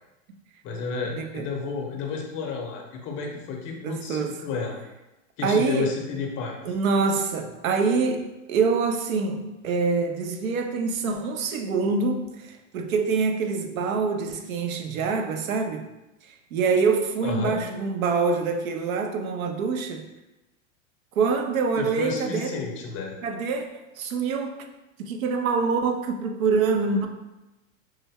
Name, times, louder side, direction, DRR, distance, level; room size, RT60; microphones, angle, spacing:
voice 1, 0.6-4.8 5.4-6.5 17.2-17.6 21.8-23.2, left 5 dB, 30° left, 1 dB, 0.6 m, -31 dB
voice 2, 1.1-1.5 3.8-4.4 5.4-5.9 6.7-15.9 16.3-20.1 21.2-22.6 23.2-23.7 24.0-24.6 25.0-27.1, right 4 dB, 90° right, 5 dB, 0.6 m, -25 dB
3.3 x 2.1 x 3.4 m, 1.0 s
hypercardioid pair, 125°, 40 cm